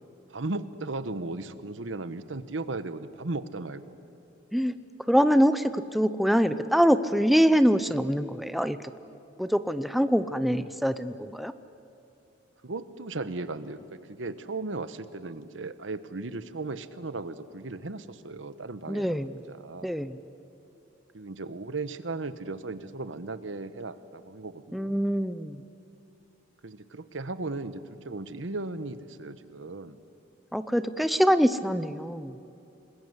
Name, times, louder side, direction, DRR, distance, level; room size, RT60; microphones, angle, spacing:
voice 1, 0.3-4.0 12.6-20.0 21.1-24.9 26.6-30.0, right 3 dB, 80° right, 13 dB, 1.1 m, -36 dB
voice 2, 5.1-8.8 9.4-11.5 18.9-19.3 19.8-20.2 24.7-25.6 30.5-32.3, equal, ahead, 11 dB, 0.6 m, -24 dB
28.0 x 20.5 x 8.1 m, 2.8 s
head